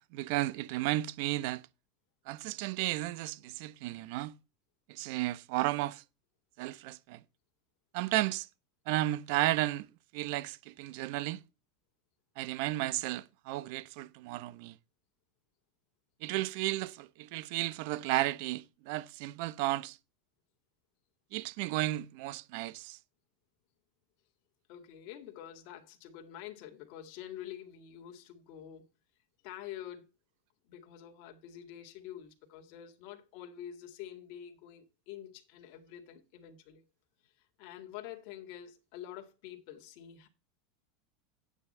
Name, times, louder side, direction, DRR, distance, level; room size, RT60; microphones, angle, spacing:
voice 1, 0.0-1.6 2.3-4.4 4.9-6.0 6.6-7.2 7.9-8.5 8.9-9.9 10.1-11.4 12.4-14.7 16.2-20.0 21.3-23.0, right 17 dB, 65° right, 0.8 m, -33 dB
voice 2, 24.7-28.8 29.4-30.1 30.6-36.8 37.2-40.3, left 11 dB, 60° left, 2.1 m, -47 dB
9.7 x 8.4 x 4.4 m
supercardioid pair, 110°, 0 cm